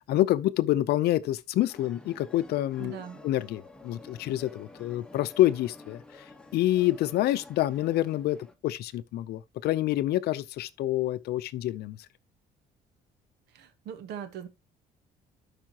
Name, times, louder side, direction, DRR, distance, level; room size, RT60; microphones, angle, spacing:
voice 1, 0.1-3.0 3.2-6.3 6.5-8.4 8.6-12.0, left 14 dB, 70° left, 0.6 m, -27 dB
sound 1, 1.7-8.5, left 2 dB, 5° left, 1.2 m, -50 dB
voice 2, 2.8-3.2 13.5-14.5, right 8 dB, 80° right, 1.5 m, -40 dB
12.0 x 5.0 x 2.9 m
cardioid pair, 110°, 17 cm